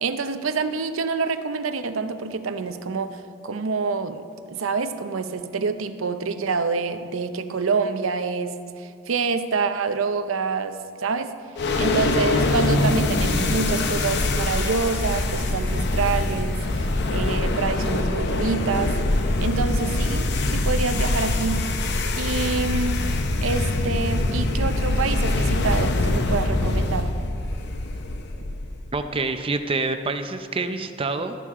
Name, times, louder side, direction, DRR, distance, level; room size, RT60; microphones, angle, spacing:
voice 1, 0.0-11.3 11.8-19.0 19.4-21.7 22.2-23.1 23.4-27.1, right 4 dB, 85° right, 10 dB, 0.6 m, -27 dB
sound 1, 11.6-28.9, left 2 dB, 55° left, 0.7 m, -24 dB
voice 2, 28.9-31.4, right 3 dB, 25° right, 8 dB, 0.5 m, -27 dB
13.0 x 11.0 x 3.7 m, 2.3 s
head